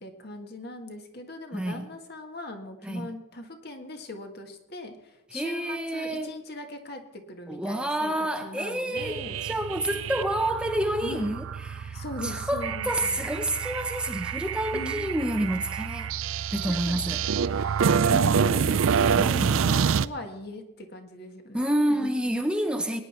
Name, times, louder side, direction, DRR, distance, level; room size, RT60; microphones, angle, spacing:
voice 1, 0.0-8.1 8.4-9.4 11.0-11.3 11.9-13.2 14.7-15.2 16.7-22.1, left 1 dB, 50° left, 5 dB, 1.7 m, -40 dB
voice 2, 1.5-1.9 2.8-3.1 5.3-6.3 7.5-16.1 16.5-17.2 19.0-19.8 21.5-23.0, right 1 dB, 5° right, 6 dB, 0.7 m, -29 dB
sound 1, 9.0-20.1, right 6 dB, 80° right, 0.4 m, -27 dB
21.0 x 9.7 x 4.4 m, 0.97 s
head